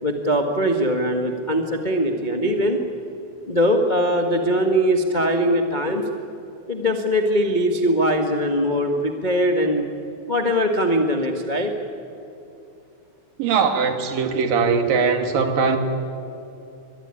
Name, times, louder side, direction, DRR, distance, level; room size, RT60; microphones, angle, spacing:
voice 1, 0.0-2.8 3.5-6.0 6.7-9.8 10.3-11.7, equal, 75° left, 3 dB, 0.4 m, -21 dB
voice 2, 13.4-15.8, right 5 dB, 80° right, 6 dB, 3.6 m, -20 dB
23.0 x 23.0 x 9.9 m, 2.7 s
omnidirectional pair, 4.0 m